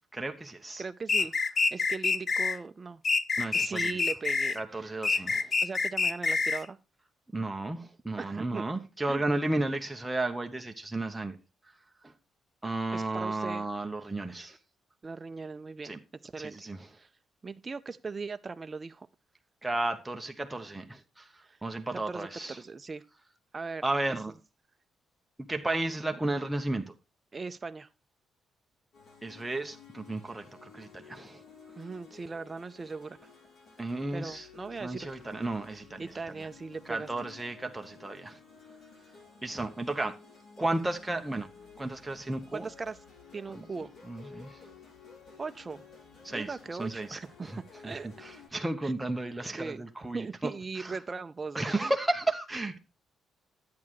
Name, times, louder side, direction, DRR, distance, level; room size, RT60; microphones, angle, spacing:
voice 1, 0.1-0.8 3.4-4.0 4.6-5.5 7.3-11.4 12.0-12.1 12.6-14.6 15.8-16.0 16.4-16.9 19.6-21.3 21.6-22.6 23.8-24.3 25.5-26.9 29.2-31.4 33.8-34.5 34.8-36.1 36.9-38.4 39.4-40.2 40.6-41.5 41.8-42.6 43.6-43.7 44.1-44.6 46.2-46.5 46.8-47.6 47.8-50.5 50.8-51.0 51.5-52.8, right 2 dB, 10° right, 0.9 m, -33 dB
voice 2, 0.8-1.3 1.7-3.0 3.5-4.9 5.6-6.8 8.2-8.6 9.1-9.2 12.9-13.6 15.0-16.0 16.2-16.6 16.9-17.1 17.4-19.1 21.4-21.6 21.9-23.0 23.5-24.2 27.3-27.9 31.8-33.2 34.1-35.2 36.0-37.1 42.5-43.0 43.3-43.9 45.4-45.8 46.3-48.1 48.8-48.9 49.6-49.8 50.1-51.9, right 4 dB, 30° right, 0.5 m, -39 dB
sound 1, 1.1-2.6 3.0-4.6 5.0-6.6, left 4 dB, 35° left, 0.5 m, -27 dB
sound 2, 28.9-48.5, left 5 dB, 55° left, 4.4 m, -54 dB
10.5 x 8.6 x 3.0 m
cardioid pair, 90°, 0 cm